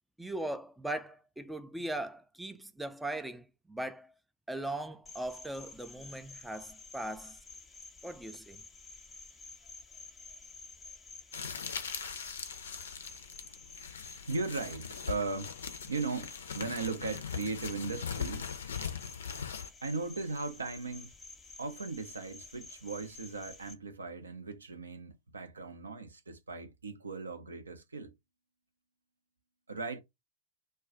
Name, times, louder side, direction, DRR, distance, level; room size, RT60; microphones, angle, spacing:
voice 1, 0.2-4.1 4.5-7.4 8.0-8.6, right 1 dB, 5° right, 0.4 m, -39 dB
Cricket, 5.0-23.7, left 3 dB, 15° left, 0.7 m, -51 dB
sound 1, 11.3-19.7, left 7 dB, 65° left, 0.4 m, -40 dB
voice 2, 14.3-15.5 15.8-18.5 19.8-21.1 21.6-28.1 29.7-30.0, right 3 dB, 75° right, 0.5 m, -37 dB
2.3 x 2.1 x 3.6 m
figure-of-eight pair, 90°, 0 cm